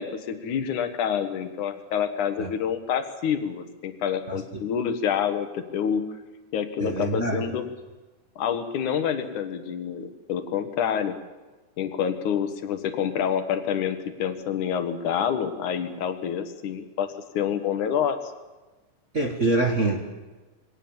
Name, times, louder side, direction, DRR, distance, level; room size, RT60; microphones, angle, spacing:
voice 1, 0.0-6.0 6.5-7.7 8.4-11.2 11.8-17.1 17.3-18.2, left 8 dB, 75° left, 9 dB, 2.8 m, -27 dB
voice 2, 6.8-7.4 19.1-20.0, right 2 dB, 35° right, 2 dB, 1.3 m, -24 dB
22.5 x 18.5 x 7.2 m, 1.2 s
omnidirectional pair, 3.6 m